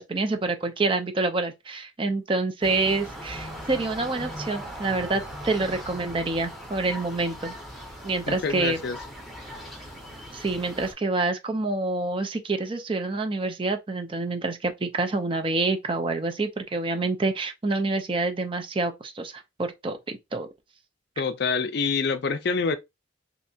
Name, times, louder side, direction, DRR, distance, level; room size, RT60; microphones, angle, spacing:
voice 1, 0.0-7.5 8.0-8.8 10.3-20.5, right 3 dB, 25° right, 0.5 m, -27 dB
sound 1, 2.6-10.9, equal, ahead, 0.8 m, -39 dB
voice 2, 8.3-9.0 21.2-22.8, left 5 dB, 55° left, 0.4 m, -26 dB
3.3 x 2.8 x 2.7 m
head